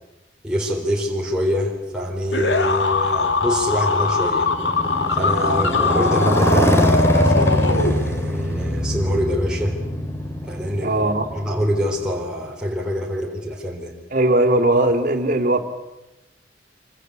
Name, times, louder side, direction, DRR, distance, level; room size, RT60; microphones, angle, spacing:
voice 1, 0.4-4.5 5.1-9.8 10.4-10.9 11.3-13.9, equal, 5° right, 4.0 m, -25 dB
sound 1, 2.3-8.4, left 3 dB, 80° left, 2.4 m, -21 dB
Motorcycle, 2.7-12.3, equal, 15° left, 2.7 m, -23 dB
voice 2, 10.8-11.3 14.1-15.6, right 2 dB, 50° right, 3.0 m, -18 dB
27.0 x 25.5 x 8.2 m
head